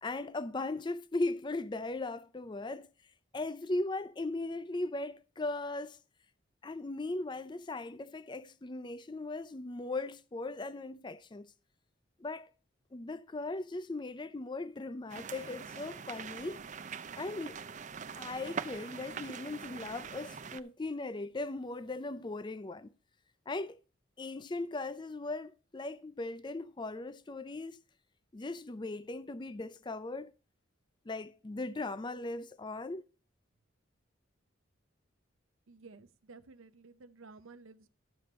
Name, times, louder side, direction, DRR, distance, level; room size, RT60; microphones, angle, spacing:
voice 1, 0.0-2.9 3.3-6.0 6.6-11.5 12.2-12.5 12.9-16.6 17.2-17.6 18.2-22.9 23.5-23.8 24.2-27.8 28.3-30.3 31.1-33.0, left 2 dB, 20° left, 0.4 m, -38 dB
sound 1, 15.1-20.6, right 6 dB, 35° right, 0.5 m, -43 dB
voice 2, 35.7-37.9, right 4 dB, 80° right, 0.7 m, -54 dB
12.5 x 6.9 x 4.2 m
head